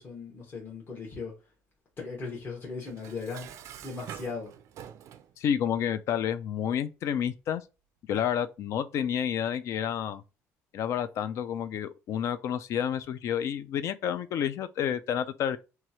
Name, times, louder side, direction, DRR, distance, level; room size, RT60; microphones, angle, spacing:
voice 1, 0.0-1.3 2.0-3.5 3.8-4.5, left 4 dB, 40° left, 1.1 m, -38 dB
Dishes pots and pans, 2.9-5.3, right 10 dB, 60° right, 0.3 m, -45 dB
voice 2, 5.4-7.6 8.1-10.2 10.7-15.6, left 9 dB, 55° left, 0.3 m, -30 dB
3.0 x 2.3 x 2.8 m
cardioid pair, 115°, 6 cm